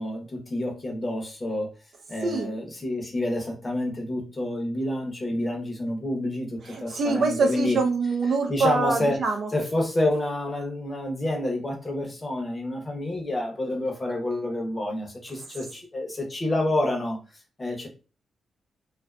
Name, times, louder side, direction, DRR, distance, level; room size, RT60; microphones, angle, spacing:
voice 1, 0.0-1.7 2.1-7.8 8.5-9.2 9.5-17.2 17.6-17.9, left 1 dB, 25° left, 1 dB, 0.7 m, -28 dB
voice 2, 2.2-2.5 6.6-9.5, right 4 dB, 65° right, 3 dB, 0.5 m, -25 dB
2.5 x 2.4 x 2.2 m, 0.34 s
cardioid pair, 110°, 0 cm